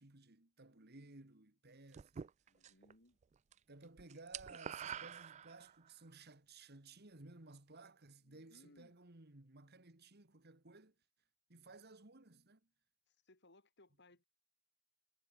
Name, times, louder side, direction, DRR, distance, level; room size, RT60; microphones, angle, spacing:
voice 1, 0.0-2.2 3.7-10.9 11.5-12.6, right 3 dB, 50° right, 2.1 m, -58 dB
sound 1, 1.9-2.9 3.2-5.9, right 8 dB, 35° right, 0.3 m, -47 dB
voice 2, 2.5-3.2 8.2-8.9 13.1-14.2, left 1 dB, 55° left, 5.9 m, -66 dB
head